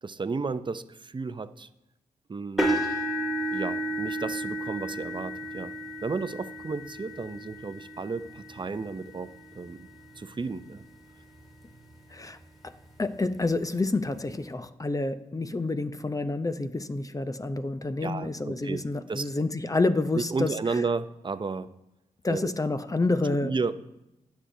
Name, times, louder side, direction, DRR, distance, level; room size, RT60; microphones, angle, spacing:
voice 1, 0.0-1.7 2.3-2.8 3.5-9.9 10.2-10.8 18.0-18.8 19.1-19.3 20.1-21.7 22.3-22.5 23.4-23.7, right 4 dB, 30° right, 0.6 m, -33 dB
sound 1, 2.6-10.6 11.2-11.5 11.9-12.0 13.4-13.5, right 1 dB, ahead, 2.3 m, -33 dB
voice 2, 13.0-20.8 22.2-23.7, left 2 dB, 25° left, 0.6 m, -28 dB
16.0 x 6.2 x 2.7 m
supercardioid pair, 45°, 15 cm